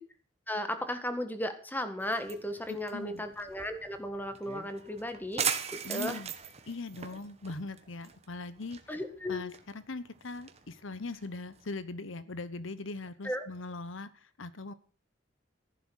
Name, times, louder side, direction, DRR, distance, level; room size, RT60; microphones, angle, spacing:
voice 1, 0.5-6.2 8.9-9.4 13.2-13.4, left 1 dB, 10° left, 9 dB, 1.7 m, -35 dB
sound 1, 2.0-11.7, right 7 dB, 30° right, 1.6 m, -40 dB
voice 2, 2.7-3.2 5.8-6.3 6.7-8.8 9.3-14.7, left 3 dB, 80° left, 15 dB, 1.0 m, -40 dB
14.5 x 11.5 x 6.3 m, 0.41 s
head